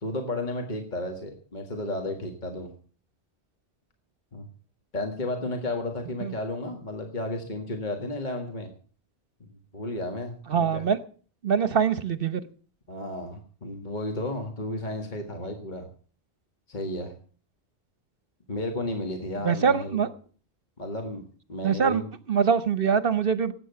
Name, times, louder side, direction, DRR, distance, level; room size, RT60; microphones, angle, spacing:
voice 1, 0.0-2.7 4.3-4.5 4.9-8.7 9.7-10.9 12.9-15.9 16.7-17.1 18.5-20.0 20.8-21.2 21.5-22.1, left 1 dB, 45° left, 3 dB, 2.0 m, -33 dB
voice 2, 10.5-11.0 11.4-12.4 19.4-20.1 21.6-22.0 22.3-23.5, right 6 dB, 60° right, 14 dB, 1.0 m, -23 dB
19.0 x 8.6 x 6.9 m, 0.43 s
omnidirectional pair, 1.1 m